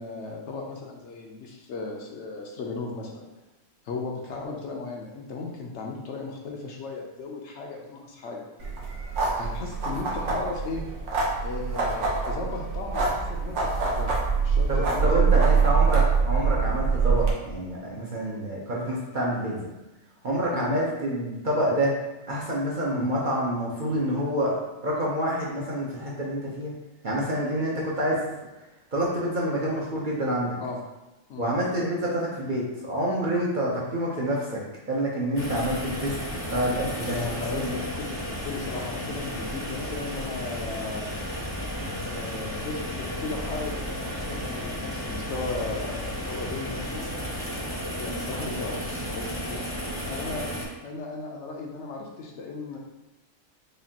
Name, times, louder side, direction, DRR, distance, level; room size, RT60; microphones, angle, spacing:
voice 1, 0.0-3.2 3.8-8.4 9.4-10.8 11.4-15.6 20.5-20.7 30.6-30.8 31.3-31.5 37.1-41.1 42.0-47.1 47.9-49.6 50.1-52.8, left 3 dB, 70° left, 0 dB, 0.9 m, -36 dB
sound 1, 8.6-17.3, right 5 dB, 70° right, 1.1 m, -24 dB
voice 2, 14.7-19.7 20.2-21.9 22.3-26.7 27.0-28.3 28.9-30.5 31.4-36.1 36.5-37.2 37.5-37.7, right 1 dB, 45° right, -4 dB, 0.7 m, -27 dB
sound 2, 35.4-50.7, equal, 15° left, 0.6 m, -33 dB
5.0 x 2.4 x 2.8 m, 1.0 s
omnidirectional pair, 1.3 m